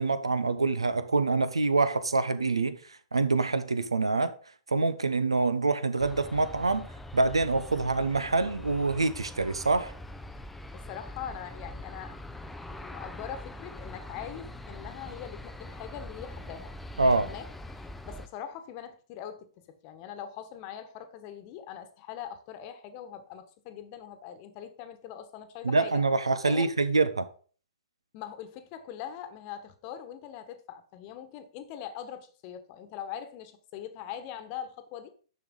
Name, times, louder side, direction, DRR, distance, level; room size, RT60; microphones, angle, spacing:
voice 1, 0.0-2.8 3.1-4.4 4.7-6.9 7.1-9.9 17.0-17.3 25.6-27.3, right 3 dB, 75° right, 0.9 m, -26 dB
Aircraft, 6.0-18.3, left 1 dB, 5° left, 0.6 m, -43 dB
voice 2, 10.7-12.2 12.7-16.7 17.0-26.0 26.5-26.7 28.1-35.1, left 9 dB, 35° left, 1.3 m, -42 dB
10.5 x 6.6 x 3.8 m
figure-of-eight pair, 115°, 3 cm